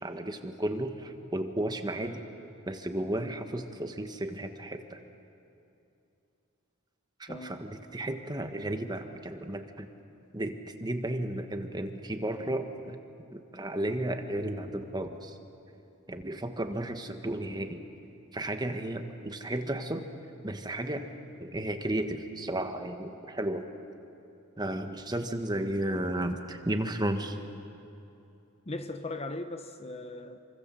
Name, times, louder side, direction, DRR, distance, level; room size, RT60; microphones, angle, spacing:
voice 1, 0.0-2.2 2.7-5.0 7.2-9.9 10.3-13.0 13.3-15.4 16.1-17.8 18.3-20.0 20.4-21.1 21.4-23.7 24.6-27.4, right 1 dB, 20° right, 1.5 m, -33 dB
voice 2, 7.3-7.6 28.7-30.4, left 2 dB, 30° left, 1.0 m, -38 dB
28.0 x 25.0 x 7.6 m
head